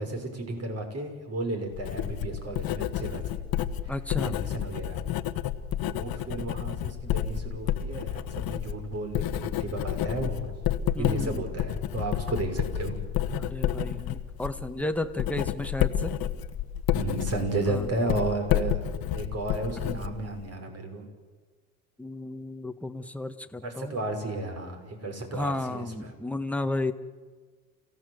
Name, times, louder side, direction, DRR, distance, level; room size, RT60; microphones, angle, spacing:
voice 1, 0.0-3.2 3.8-3.9 4.2-5.0 5.9-10.6 11.0-13.0 16.9-18.8 19.1-21.1 23.6-26.1, right 2 dB, 35° right, 5 dB, 6.2 m, -33 dB
Writing, 1.7-20.5, left 11 dB, 55° left, 1.5 m, -30 dB
voice 2, 3.9-4.4 10.9-11.4 13.4-16.1 17.7-17.9 22.0-24.0 25.3-26.9, left 2 dB, 5° left, 7 dB, 1.7 m, -33 dB
28.5 x 17.0 x 8.2 m, 1.4 s
supercardioid pair, 85°, 42 cm